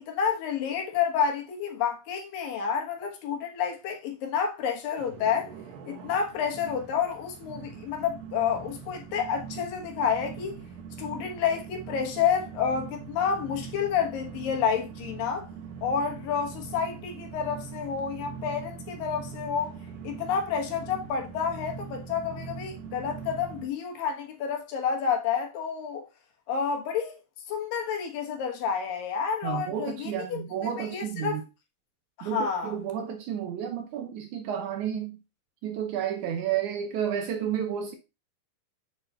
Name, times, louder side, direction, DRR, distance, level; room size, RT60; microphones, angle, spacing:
voice 1, 0.0-5.5 5.9-10.6 11.0-15.5 15.8-19.7 20.0-26.0 26.5-27.1 27.5-30.4 30.8-31.4 32.2-32.8, left 7 dB, 75° left, 3.0 m, -29 dB
sound 1, 5.0-23.7, right 6 dB, 90° right, 2.9 m, -42 dB
voice 2, 29.4-31.4 32.2-35.2 35.6-37.9, right 9 dB, 75° right, 1.9 m, -31 dB
7.7 x 3.9 x 4.1 m
omnidirectional pair, 4.0 m